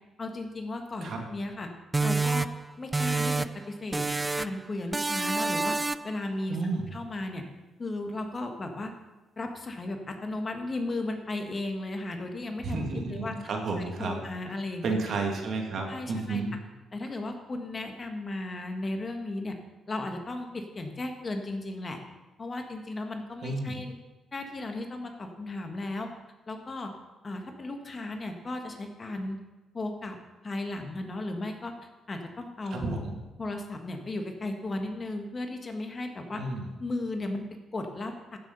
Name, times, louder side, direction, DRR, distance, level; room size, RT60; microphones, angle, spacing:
voice 1, 0.2-1.7 2.0-2.5 2.8-4.0 4.4-6.6 6.9-7.4 7.8-8.9 9.4-12.8 13.1-13.3 14.0-14.9 15.9-16.4 16.9-19.6 19.9-22.0 22.4-23.9 24.3-26.1 26.5-26.9 27.2-29.4 29.7-30.2 30.4-31.7 32.1-32.9 33.4-36.4 36.8-38.4, left 2 dB, 35° left, 4 dB, 1.6 m, -35 dB
sound 1, 1.9-3.7 3.9-4.6 4.9-6.2, right 3 dB, 20° right, 0.3 m, -28 dB
voice 2, 6.5-7.0 12.6-16.6 23.4-23.8 32.7-33.1 36.3-36.7, right 3 dB, 60° right, 2 dB, 2.3 m, -32 dB
14.5 x 6.9 x 5.5 m, 1.1 s
cardioid pair, 90°, 0 cm